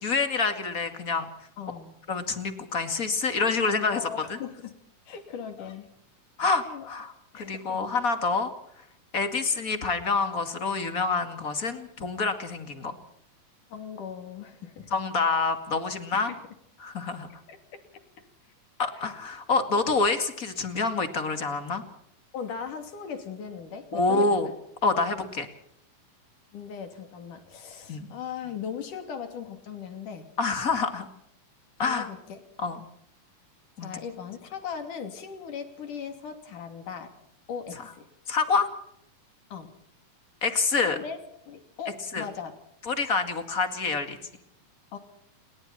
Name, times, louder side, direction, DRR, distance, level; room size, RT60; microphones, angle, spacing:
voice 1, 0.0-1.3 2.1-4.0 6.4-8.5 9.1-13.0 14.9-16.3 16.8-17.3 18.8-21.8 23.9-24.5 24.8-25.5 27.9-28.1 30.4-31.1 31.8-32.1 32.6-32.8 33.8-34.0 38.3-38.7 40.4-41.0 42.1-42.2 42.9-44.2, left 4 dB, 30° left, 8 dB, 2.2 m, -27 dB
voice 2, 1.6-2.0 3.6-4.7 5.1-5.9 6.6-7.0 7.3-7.8 13.7-14.9 16.1-16.4 17.5-17.8 18.9-19.1 19.7-20.0 22.3-24.3 26.5-30.3 31.8-32.4 33.8-37.1 37.5-38.1 39.5-39.7 40.8-41.2 41.5-42.5 44.9-45.0, left 7 dB, 70° left, 7 dB, 4.3 m, -38 dB
29.0 x 21.5 x 4.3 m, 0.75 s
omnidirectional pair, 3.8 m